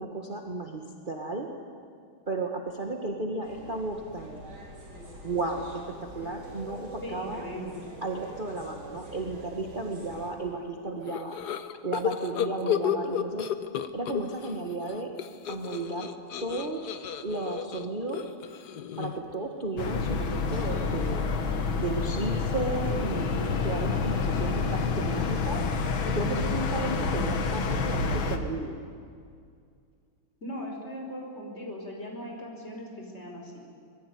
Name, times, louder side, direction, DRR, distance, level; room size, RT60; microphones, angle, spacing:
voice 1, 0.0-1.5 2.3-4.4 5.2-5.6 6.1-7.5 8.0-11.4 11.8-13.5 13.9-15.1 15.5-16.1 16.4-18.3 19.0-21.2 21.7-25.6 26.1-28.8, right 2 dB, 25° right, 1 dB, 1.7 m, -33 dB
sound 1, 3.4-10.3, right 1 dB, 80° right, 7.0 m, -45 dB
voice 2, 7.0-7.8 12.5-12.8 30.4-33.6, equal, 30° left, 0 dB, 5.4 m, -39 dB
sound 2, 11.1-14.5 14.8-19.3, left 10 dB, 60° left, 1.4 m, -32 dB
sound 3, 19.8-28.4, left 4 dB, 75° left, 2.3 m, -28 dB
26.0 x 20.5 x 9.5 m, 2.2 s
omnidirectional pair, 2.2 m